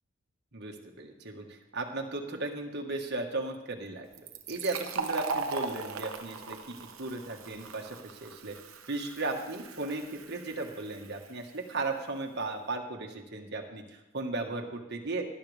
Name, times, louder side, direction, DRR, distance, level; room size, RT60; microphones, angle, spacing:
voice 1, 0.5-8.5 8.9-15.3, right 2 dB, 50° right, 2 dB, 1.7 m, -36 dB
Fill (with liquid), 4.1-11.5, right 4 dB, 70° right, 1.1 m, -39 dB
18.5 x 11.5 x 3.5 m, 1.1 s
head